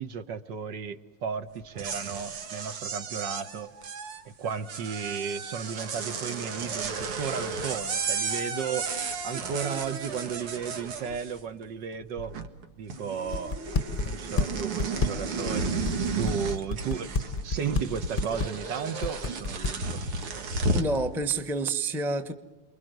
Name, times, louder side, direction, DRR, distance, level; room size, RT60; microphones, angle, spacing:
voice 1, 0.0-3.7 4.2-8.9 9.2-12.3 12.8-13.6 14.0-17.1 17.4-20.0, right 7 dB, 60° right, 1.6 m, -34 dB
sound 1, 1.6-11.6 11.9-12.6 12.9-21.0, right 4 dB, 85° right, 2.7 m, -33 dB
sound 2, 13.3-14.4 14.8-17.8 18.2-18.7 19.0-19.7, left 3 dB, 35° left, 0.9 m, -27 dB
voice 2, 20.7-22.3, right 2 dB, ahead, 0.8 m, -28 dB
28.5 x 22.5 x 7.9 m
omnidirectional pair, 2.3 m